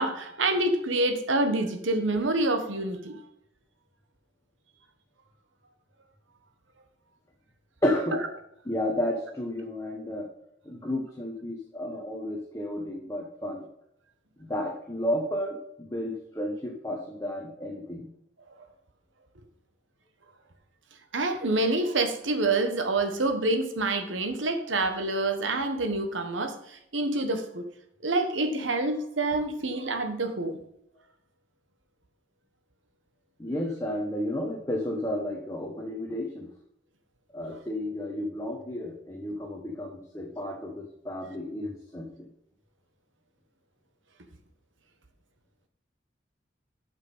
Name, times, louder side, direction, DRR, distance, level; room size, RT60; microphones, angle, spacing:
voice 1, 0.0-3.2 21.1-27.6 28.0-30.6, right 2 dB, 90° right, 1.2 m, -27 dB
voice 2, 7.8-8.2 8.6-10.3 10.6-13.7 14.5-18.1 33.4-36.5 37.3-42.3, left 1 dB, 15° left, 1.0 m, -32 dB
8.0 x 5.7 x 5.4 m
head